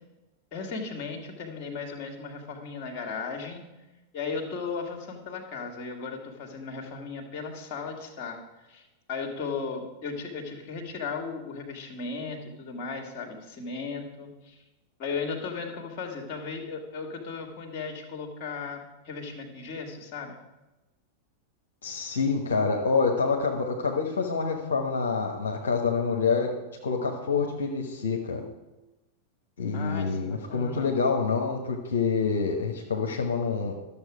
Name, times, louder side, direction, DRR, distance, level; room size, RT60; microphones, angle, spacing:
voice 1, 0.5-3.6 4.1-8.4 8.7-14.6 15.0-20.3 29.7-30.9, left 4 dB, 40° left, 4 dB, 2.1 m, -36 dB
voice 2, 21.8-26.5 26.8-28.4 29.6-33.7, left 5 dB, 65° left, 1 dB, 1.2 m, -27 dB
12.5 x 7.1 x 5.0 m, 1.0 s
figure-of-eight pair, 90°, 0 cm